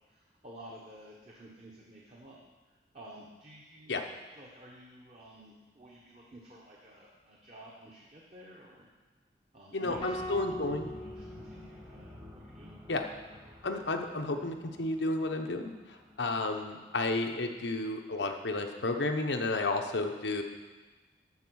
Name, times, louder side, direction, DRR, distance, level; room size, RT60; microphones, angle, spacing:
voice 1, 0.1-2.4 2.9-4.0 4.3-8.9 9.5-12.8, right 1 dB, 35° right, -3 dB, 1.2 m, -52 dB
voice 2, 9.7-10.9 12.9-13.0 13.6-15.7 16.2-20.4, left 2 dB, 90° left, 4 dB, 1.0 m, -32 dB
sound 1, 9.9-18.7, left 1 dB, 15° right, 1.1 m, -52 dB
sound 2, 10.0-12.3, equal, 25° left, 0.5 m, -42 dB
12.5 x 4.9 x 6.3 m, 1.2 s
head